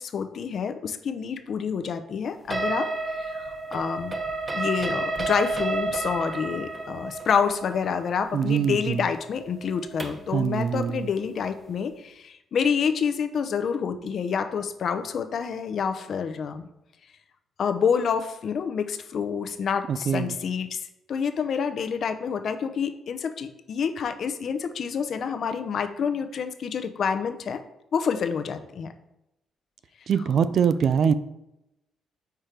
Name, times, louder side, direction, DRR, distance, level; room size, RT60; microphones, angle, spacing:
voice 1, 0.0-2.9 3.2-4.1 4.5-16.7 17.6-20.8 21.1-27.6 27.9-28.9, left 6 dB, 60° left, 9 dB, 0.6 m, -28 dB
sound 1, 2.5-10.3, right 2 dB, 25° right, 0.7 m, -31 dB
voice 2, 8.3-9.0 10.3-11.1 19.9-20.4 30.1-31.1, right 7 dB, 60° right, 13 dB, 0.4 m, -23 dB
4.7 x 4.4 x 5.0 m, 0.88 s
cardioid pair, 90°, 0 cm